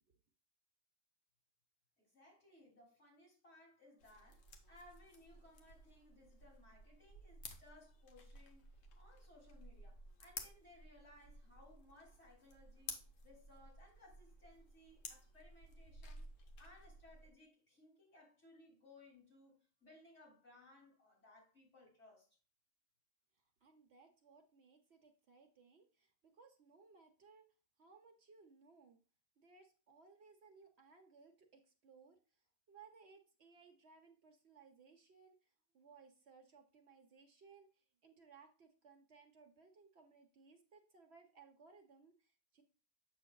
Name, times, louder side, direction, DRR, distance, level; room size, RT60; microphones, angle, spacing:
voice 1, 2.0-16.3 16.6-22.3, left 2 dB, 55° left, -4 dB, 3.4 m, -63 dB
sound 1, 4.0-17.3, left 3 dB, 85° left, 1.3 m, -55 dB
voice 2, 23.6-27.4 27.8-29.0 29.4-32.2 32.7-42.6, right 5 dB, 60° right, 5 dB, 1.0 m, -64 dB
7.6 x 6.2 x 2.3 m, 0.36 s
omnidirectional pair, 1.3 m